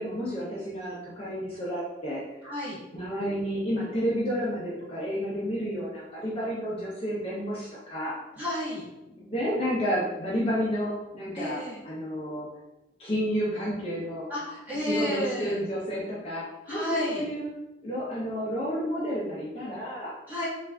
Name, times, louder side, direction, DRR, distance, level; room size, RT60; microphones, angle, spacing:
voice 1, 0.0-2.2 2.9-8.2 9.1-12.5 13.0-14.3 14.8-17.5 17.8-20.2, equal, 30° left, -7 dB, 0.5 m, -31 dB
voice 2, 2.4-2.8 8.3-8.8 11.3-11.8 14.3-15.6 16.6-17.2 20.3-20.5, left 1 dB, 10° right, -11 dB, 1.4 m, -31 dB
3.2 x 2.4 x 2.2 m, 0.98 s
head